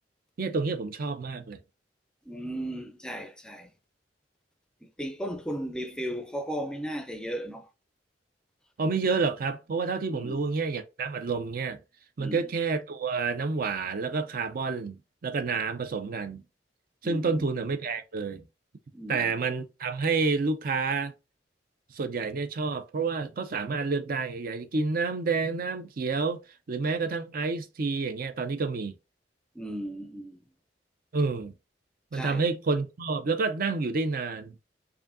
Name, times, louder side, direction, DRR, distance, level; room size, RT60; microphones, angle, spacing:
voice 1, 0.4-1.6 8.8-11.8 12.2-15.0 15.2-16.4 17.0-18.4 19.1-21.1 21.9-26.4 26.7-28.9 31.1-31.5 32.1-34.5, right 4 dB, 55° right, 0.5 m, -29 dB
voice 2, 2.3-3.7 5.0-7.7 10.1-10.4 12.2-12.5 17.0-17.5 18.9-19.3 29.5-30.4 32.1-32.4, equal, 5° left, 0.4 m, -36 dB
4.9 x 2.6 x 2.5 m
head